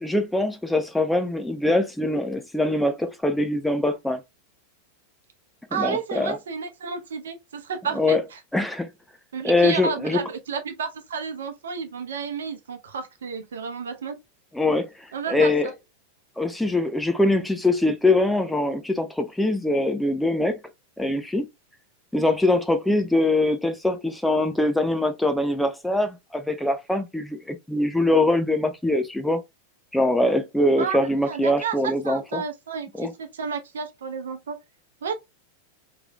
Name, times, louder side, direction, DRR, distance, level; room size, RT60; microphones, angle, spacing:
voice 1, 0.0-4.2 5.7-6.3 8.0-8.2 8.5-8.9 9.4-10.2 14.5-15.7 16.4-20.6 21.0-21.5 22.1-29.4 29.9-32.4 33.0-33.1, left 2 dB, 5° left, 0.6 m, -23 dB
voice 2, 5.7-8.4 9.3-14.2 15.1-15.5 30.8-31.0 31.2-34.6 35.0-35.1, right 6 dB, 65° right, 0.8 m, -31 dB
4.8 x 3.3 x 2.2 m
figure-of-eight pair, 90°, 0 cm